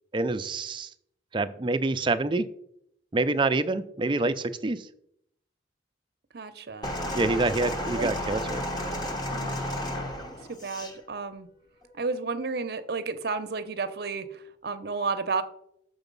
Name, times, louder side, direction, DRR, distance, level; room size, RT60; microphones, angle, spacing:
voice 1, 0.1-0.9 1.3-2.5 3.1-4.9 7.1-8.7, right 2 dB, 25° right, 11 dB, 0.4 m, -26 dB
voice 2, 6.3-6.9 8.0-8.1 9.3-9.8 10.5-11.5 11.9-15.4, right 4 dB, 60° right, 11 dB, 0.7 m, -32 dB
sound 1, 6.8-11.0 11.8-12.0, left 1 dB, 20° left, 1.0 m, -32 dB
7.0 x 5.7 x 5.3 m, 0.74 s
head